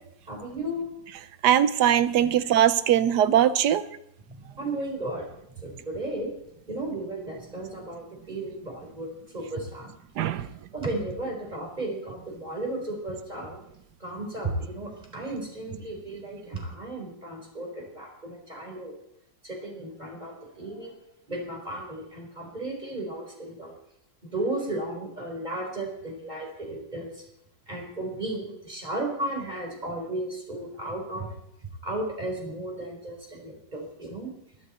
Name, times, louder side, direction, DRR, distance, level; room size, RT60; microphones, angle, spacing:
voice 1, 0.3-0.9 4.3-5.2 5.6-6.3 6.7-9.9 10.4-10.5 10.7-13.6 14.0-18.9 19.4-20.9 21.3-23.7 24.2-27.1 27.7-31.3 31.8-34.3, right 1 dB, 20° right, 1 dB, 4.3 m, -34 dB
voice 2, 1.4-3.8 10.2-10.5, right 10 dB, 65° right, 14 dB, 1.3 m, -21 dB
20.5 x 12.0 x 4.3 m, 0.76 s
omnidirectional pair, 2.0 m